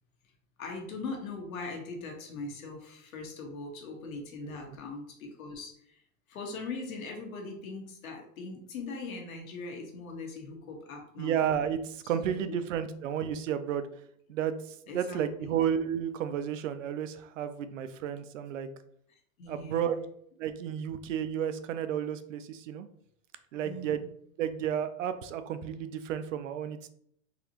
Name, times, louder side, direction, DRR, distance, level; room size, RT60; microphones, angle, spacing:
voice 1, 0.6-6.0 6.3-11.4 12.3-12.6 14.9-15.6 19.4-20.0 23.5-24.0, left 3 dB, 85° left, 1 dB, 1.3 m, -41 dB
voice 2, 11.2-13.9 14.3-14.5 14.9-18.7 19.5-20.0 20.4-22.9 23.5-24.1 24.4-26.9, right 9 dB, 70° right, 11 dB, 0.5 m, -32 dB
4.0 x 2.8 x 2.8 m, 0.67 s
supercardioid pair, 180°, 40 cm